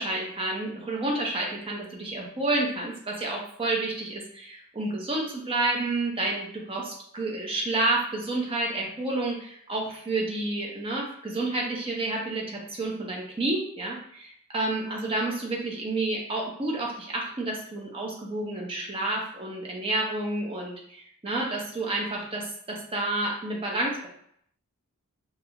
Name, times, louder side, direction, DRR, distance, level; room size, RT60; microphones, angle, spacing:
voice 1, 0.0-24.1, right 2 dB, 25° right, -2 dB, 0.6 m, -30 dB
2.4 x 2.3 x 2.9 m, 0.66 s
head